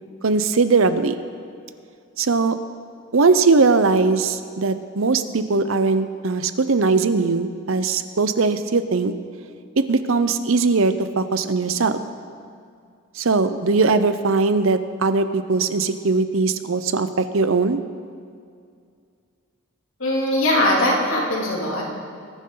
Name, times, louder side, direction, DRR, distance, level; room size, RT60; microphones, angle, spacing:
voice 1, 0.2-1.2 2.2-2.6 3.1-9.1 9.8-12.0 13.2-17.8, right 4 dB, 80° right, 11 dB, 0.7 m, -20 dB
voice 2, 20.0-22.0, left 1 dB, 80° left, -3 dB, 3.0 m, -21 dB
21.0 x 11.0 x 3.9 m, 2.3 s
head